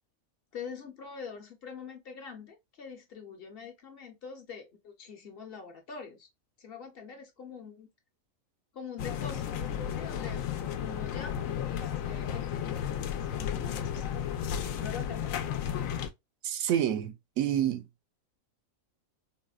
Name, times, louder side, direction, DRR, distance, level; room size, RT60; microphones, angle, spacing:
voice 1, 0.5-6.3 6.6-7.9 8.7-10.5 10.8-14.1 14.7-15.3, left 6 dB, 50° left, 0.9 m, -44 dB
sound 1, 9.0-16.1, left 9 dB, 75° left, 0.9 m, -33 dB
voice 2, 16.4-17.8, right 10 dB, 75° right, 1.0 m, -28 dB
4.1 x 2.1 x 2.3 m
omnidirectional pair, 1.4 m